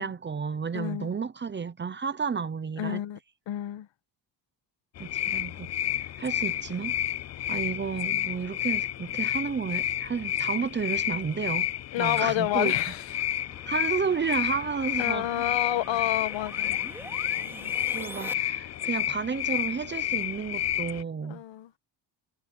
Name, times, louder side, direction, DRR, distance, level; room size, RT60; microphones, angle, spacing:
voice 1, 0.0-3.0 5.0-7.0 7.5-11.7 12.0-12.7 13.7-15.5 17.5-17.6 17.9-21.4, right 6 dB, 25° right, 0.9 m, -32 dB
voice 2, 0.7-1.1 2.8-3.2 3.5-3.9 11.9-13.3 15.0-16.8 17.3-17.7 21.2-21.8, left 13 dB, 70° left, 1.9 m, -30 dB
sound 1, 5.0-21.0, left 12 dB, 40° left, 0.4 m, -30 dB
sound 2, 11.8-18.3, right 1 dB, 5° right, 3.0 m, -46 dB
cardioid pair, 155°, 46 cm